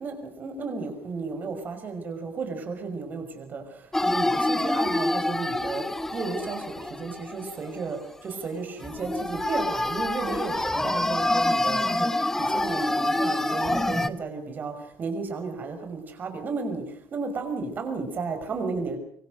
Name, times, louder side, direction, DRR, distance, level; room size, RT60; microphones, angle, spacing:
voice 1, 0.0-16.8 17.1-19.0, right 4 dB, 35° right, 6 dB, 5.8 m, -33 dB
sound 1, 3.9-8.0 8.3-8.5 8.8-14.1, left 1 dB, 5° left, 1.0 m, -26 dB
25.0 x 24.5 x 6.7 m, 0.62 s
cardioid pair, 170°, 6 cm